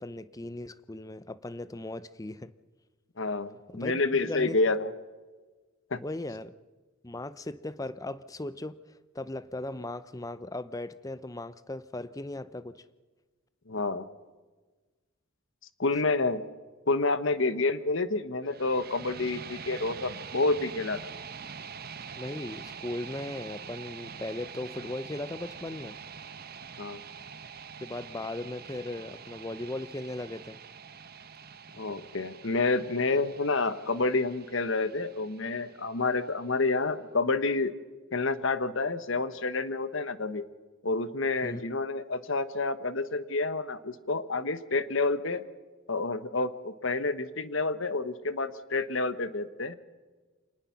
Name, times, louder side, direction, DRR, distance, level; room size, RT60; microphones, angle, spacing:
voice 1, 0.0-2.5 3.7-4.6 6.0-6.5 7.0-8.8 9.1-12.9 22.2-26.0 27.8-30.6 41.4-41.6, left 1 dB, 15° left, 0.6 m, -37 dB
voice 2, 3.2-4.9 5.9-6.0 13.7-14.1 15.8-16.4 16.9-21.0 26.8-27.0 31.7-37.7 38.1-40.4 40.8-45.4 45.9-49.8, left 3 dB, 60° left, 1.1 m, -29 dB
sound 1, 18.4-36.5, right 6 dB, 45° right, 1.0 m, -45 dB
26.0 x 19.5 x 5.9 m
head